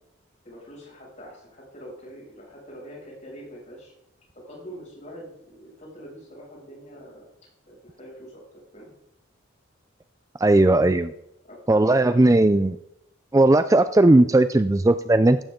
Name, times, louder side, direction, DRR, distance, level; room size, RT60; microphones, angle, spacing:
voice 1, 0.4-3.9 4.3-7.2 7.6-8.9 11.4-12.6, equal, 35° left, -3 dB, 6.8 m, -43 dB
voice 2, 10.4-11.1 11.7-12.7 13.3-15.4, right 2 dB, 15° right, 11 dB, 0.3 m, -17 dB
16.0 x 12.5 x 3.8 m, 0.82 s
head